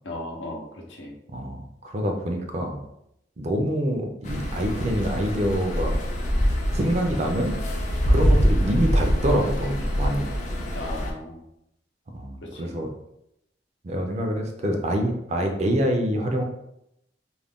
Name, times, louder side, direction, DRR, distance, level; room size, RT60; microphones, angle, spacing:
voice 1, 0.0-1.1 10.7-11.4 12.4-12.7, left 1 dB, 90° left, 0 dB, 0.7 m, -36 dB
voice 2, 1.3-2.8 3.4-6.0 6.7-7.6 8.1-10.3 12.1-12.9 13.8-16.4, equal, 35° right, 3 dB, 0.4 m, -26 dB
sound 1, 4.2-11.1, equal, 40° left, 0.4 m, -24 dB
2.4 x 2.2 x 3.4 m, 0.80 s
head